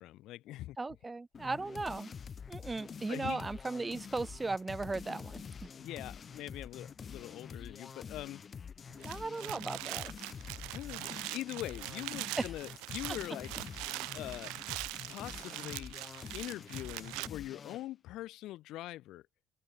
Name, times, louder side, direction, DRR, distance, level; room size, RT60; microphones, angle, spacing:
voice 1, 0.0-0.8 3.1-3.4 5.8-8.4 10.7-13.5 14.1-14.5 15.1-16.0 16.3-19.2, left 15 dB, 65° left, 0.3 m, -43 dB
voice 2, 0.8-2.1 2.5-5.4 9.0-10.1 12.4-12.5, right 3 dB, 20° right, 0.6 m, -37 dB
sound 1, 1.3-17.9, left 6 dB, 40° left, 1.1 m, -47 dB
sound 2, 8.9-17.3, right 25 dB, 70° right, 0.4 m, -42 dB
open air
hypercardioid pair, 55°, 0 cm